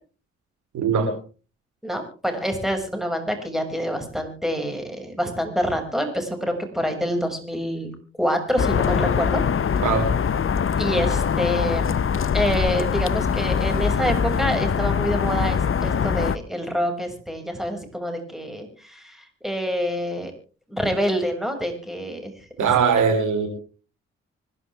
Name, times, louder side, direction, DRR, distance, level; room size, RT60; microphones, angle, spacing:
voice 1, 0.7-1.2 9.8-10.1 22.6-23.5, right 6 dB, 65° right, 4 dB, 4.8 m, -20 dB
voice 2, 1.8-7.9 8.2-9.4 10.8-11.9 12.3-20.3 20.7-22.3, equal, ahead, 4 dB, 6.7 m, -26 dB
sound 1, 8.6-16.4, left 7 dB, 40° left, 1.0 m, -23 dB
25.5 x 12.0 x 3.6 m, 0.38 s
hypercardioid pair, 45°, 33 cm